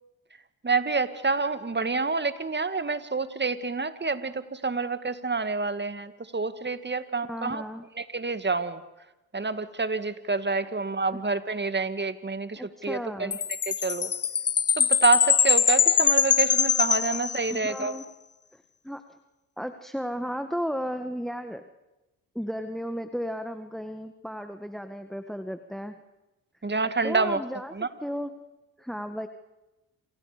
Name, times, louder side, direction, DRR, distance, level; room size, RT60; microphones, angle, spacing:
voice 1, 0.6-7.6 8.0-8.8 9.3-13.4 13.7-14.1 14.8-17.9 26.6-27.4 27.7-27.9, right 4 dB, 25° right, 11 dB, 2.1 m, -28 dB
voice 2, 7.3-7.8 11.1-11.2 12.6-13.4 17.5-18.1 18.5-19.2 19.6-21.6 22.3-25.9 27.0-27.7 28.0-28.3 28.8-29.3, equal, ahead, 9 dB, 1.7 m, -34 dB
Chime, 13.3-17.8, left 7 dB, 35° left, 1.0 m, -23 dB
28.5 x 28.0 x 5.2 m, 1.0 s
hypercardioid pair, 45°, 44 cm